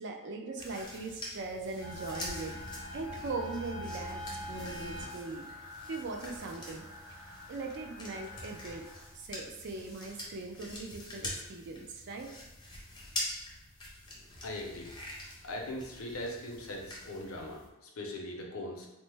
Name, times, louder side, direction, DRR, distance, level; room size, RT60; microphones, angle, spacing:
voice 1, 0.0-2.6 2.9-4.2 4.5-5.5 5.8-6.9 7.5-8.8 9.1-12.3, right 3 dB, 50° right, 3 dB, 0.4 m, -40 dB
sound 1, 0.6-17.7, left 1 dB, 20° left, 0.5 m, -45 dB
sound 2, 1.8-9.0, left 1 dB, 85° right, 1.4 m, -44 dB
voice 2, 14.4-14.9 15.4-18.9, left 1 dB, 75° left, 0 dB, 0.6 m, -40 dB
3.1 x 2.0 x 3.2 m, 1.0 s
head